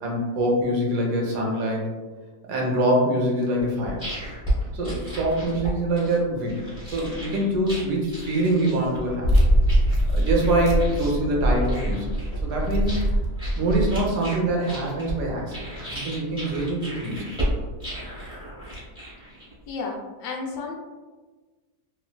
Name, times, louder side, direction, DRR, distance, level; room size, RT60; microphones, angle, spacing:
voice 1, 0.0-1.8 2.5-4.0 4.7-9.3 10.1-12.1 12.4-13.1 13.5-17.3, right 1 dB, 90° right, -1 dB, 1.3 m, -24 dB
sound 1, 3.6-19.7, equal, 5° right, 0.6 m, -33 dB
sound 2, 9.2-14.1, right 1 dB, 75° right, 0.6 m, -23 dB
voice 2, 19.7-20.7, left 4 dB, 80° left, 0 dB, 1.2 m, -32 dB
3.3 x 2.4 x 2.2 m, 1.3 s
omnidirectional pair, 1.7 m